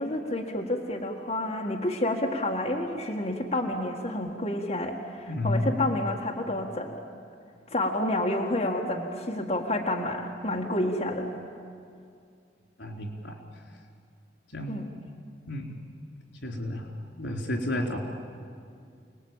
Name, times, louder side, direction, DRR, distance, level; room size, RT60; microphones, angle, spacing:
voice 1, 0.0-7.0 7.7-11.3 14.7-14.9, left 1 dB, 35° left, -1 dB, 1.8 m, -29 dB
voice 2, 5.3-5.9 12.8-13.4 14.5-14.8 15.5-15.8 16.4-18.0, left 1 dB, 85° left, 2 dB, 3.8 m, -31 dB
29.0 x 19.5 x 9.0 m, 2.3 s
head